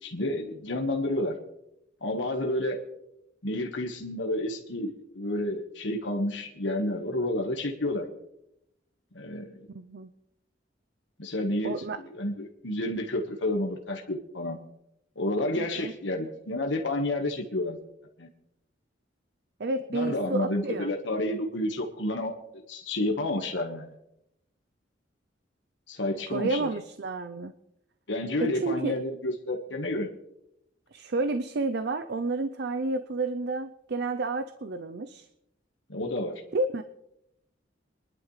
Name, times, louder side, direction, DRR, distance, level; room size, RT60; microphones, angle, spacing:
voice 1, 0.0-1.3 2.0-2.8 3.4-8.0 9.1-9.6 11.2-14.6 15.1-17.8 18.2-18.3 19.9-22.3 22.7-23.9 25.9-26.7 28.1-30.1 35.9-36.4, left 1 dB, 75° left, 3 dB, 1.5 m, -30 dB
voice 2, 9.7-10.1 11.6-12.0 15.6-15.9 19.6-20.9 26.3-27.5 28.4-29.0 30.9-35.3 36.5-36.8, right 3 dB, 60° right, 10 dB, 0.6 m, -30 dB
24.0 x 11.5 x 3.3 m, 0.83 s
head